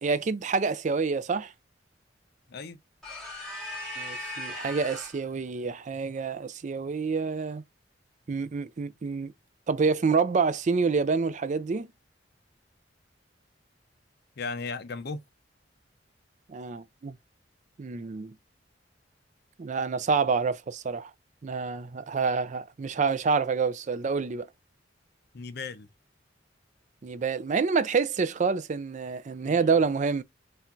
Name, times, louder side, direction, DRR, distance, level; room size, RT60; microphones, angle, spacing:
voice 1, 0.0-1.5 4.0-7.6 8.3-9.3 9.7-11.9 16.5-17.1 17.8-18.3 19.6-21.1 21.4-24.5 27.0-30.2, right 5 dB, 40° right, 0.4 m, -27 dB
voice 2, 2.5-2.8 14.4-15.2 25.3-25.9 29.4-29.7, left 4 dB, 60° left, 0.6 m, -36 dB
sound 1, 3.0-5.3, left 1 dB, ahead, 2.2 m, -38 dB
4.3 x 3.4 x 2.5 m
head